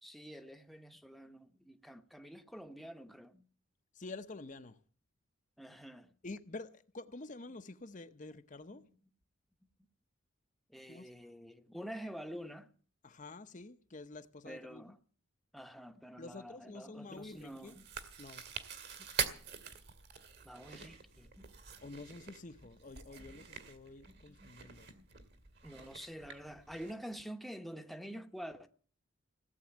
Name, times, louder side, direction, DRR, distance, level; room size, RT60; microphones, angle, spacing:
voice 1, 0.0-3.5 5.6-6.1 8.7-9.0 10.7-12.7 14.4-15.0 15.5-17.9 19.0-19.1 20.4-21.5 24.1-24.6 25.0-25.1 25.6-28.7, equal, ahead, 0.9 m, -48 dB
voice 2, 3.9-4.8 6.2-8.8 10.9-11.1 13.0-15.0 16.2-17.7 18.2-18.4 21.8-24.9, left 2 dB, 40° left, 0.8 m, -48 dB
Chewing mastication, 17.2-26.9, right 6 dB, 55° right, 2.2 m, -45 dB
17.5 x 8.3 x 9.9 m
head